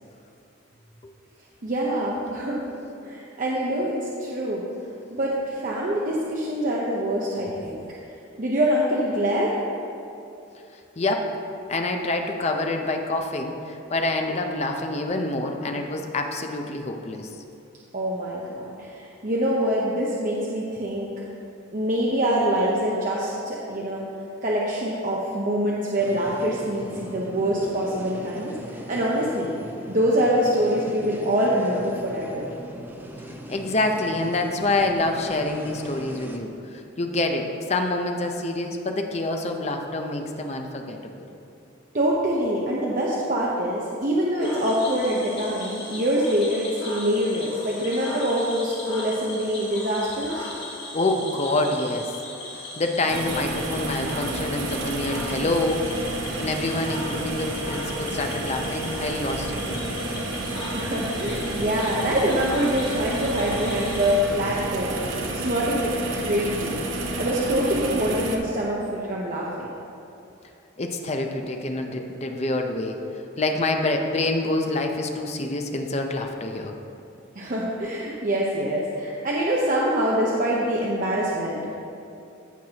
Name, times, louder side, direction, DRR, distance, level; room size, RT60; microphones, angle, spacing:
voice 1, 1.6-4.6 5.1-7.8 8.4-9.6 17.9-21.1 21.7-24.1 24.4-29.5 29.9-32.5 41.9-50.5 60.7-65.0 65.4-66.8 67.2-69.7 77.3-81.7, equal, 45° right, -4 dB, 0.8 m, -25 dB
voice 2, 11.0-11.3 11.7-17.4 33.5-41.3 50.9-52.2 52.8-55.8 56.4-60.2 70.8-73.0 73.4-76.7, left 2 dB, 35° left, 4 dB, 0.6 m, -27 dB
sound 1, 26.0-36.4, equal, 10° right, 0.7 m, -40 dB
Cricket / Frog, 44.4-64.2, left 2 dB, 60° left, 1.9 m, -38 dB
sound 2, 53.1-68.4, right 2 dB, 80° right, 0.9 m, -30 dB
15.5 x 5.9 x 2.9 m, 2.7 s
head